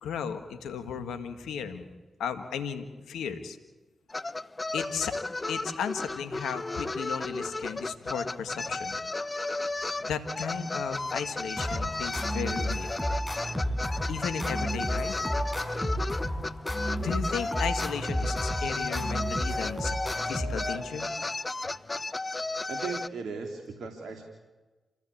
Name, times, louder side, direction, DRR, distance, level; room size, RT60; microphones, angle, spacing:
voice 1, 0.0-1.9 2.2-3.6 4.7-5.2 5.5-9.0 10.0-12.9 14.1-15.3 17.0-20.0 20.3-21.1, left 7 dB, 85° left, 7 dB, 1.8 m, -35 dB
sound 1, 4.1-23.1, left 2 dB, 35° left, 0.9 m, -34 dB
sound 2, 11.6-21.1, equal, 5° left, 7.0 m, -32 dB
voice 2, 22.7-24.2, right 5 dB, 70° right, 2 dB, 3.0 m, -37 dB
28.0 x 16.5 x 8.6 m, 1.2 s
supercardioid pair, 40°, 0 cm